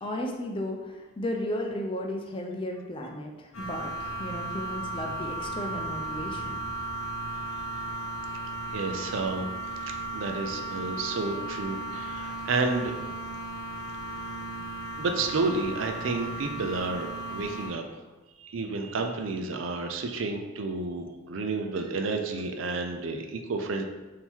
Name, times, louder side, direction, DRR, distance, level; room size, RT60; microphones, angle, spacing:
voice 1, 0.0-6.6, left 1 dB, 25° left, 2 dB, 0.5 m, -34 dB
sound 1, 3.5-17.7, right 1 dB, 90° left, 0.9 m, -35 dB
voice 2, 8.7-9.5 9.8-13.0 14.2-14.3 15.0-17.8 18.4-23.8, right 3 dB, 70° right, 5 dB, 0.5 m, -31 dB
3.7 x 2.8 x 4.4 m, 1.2 s
head